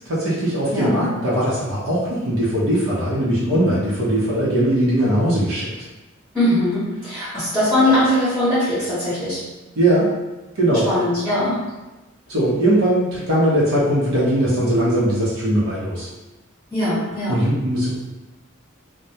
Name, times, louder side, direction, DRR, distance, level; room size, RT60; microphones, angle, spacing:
voice 1, 0.0-5.9 9.8-10.1 10.6-10.9 12.3-16.1 17.3-17.9, right 1 dB, 75° right, -8 dB, 0.7 m, -20 dB
voice 2, 0.7-1.1 6.3-9.4 10.8-11.6 16.7-17.4, left 1 dB, 5° left, -13 dB, 0.8 m, -20 dB
2.2 x 2.0 x 2.7 m, 1.1 s
head